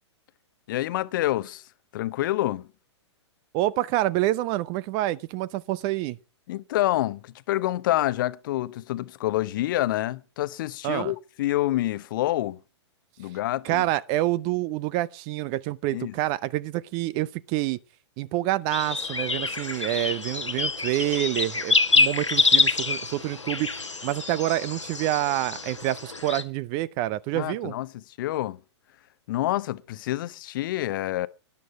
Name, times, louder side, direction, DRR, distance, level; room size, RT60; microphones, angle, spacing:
voice 1, 0.7-1.6 1.9-2.7 6.5-12.6 13.2-13.8 15.9-16.1 27.3-27.9 28.2-28.6 29.3-31.3, left 15 dB, 45° left, 0.8 m, -27 dB
voice 2, 3.5-6.2 10.8-11.1 13.6-17.8 18.2-27.7, right 16 dB, 30° right, 0.6 m, -27 dB
sound 1, 18.7-26.4, left 4 dB, 85° left, 1.2 m, -26 dB
12.5 x 11.0 x 4.8 m
figure-of-eight pair, 110°, 15 cm